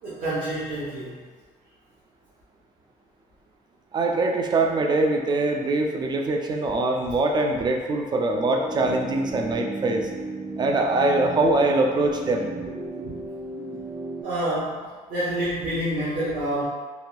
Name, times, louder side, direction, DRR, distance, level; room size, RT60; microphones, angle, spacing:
voice 1, 0.0-1.1 14.2-16.6, right 1 dB, 55° right, -11 dB, 0.8 m, -28 dB
voice 2, 3.9-10.1 10.6-12.5, right 2 dB, 25° right, 2 dB, 0.3 m, -23 dB
sound 1, 8.3-14.2, right 2 dB, ahead, 0.9 m, -35 dB
2.9 x 2.6 x 2.2 m, 1.5 s
cardioid pair, 110°, 17 cm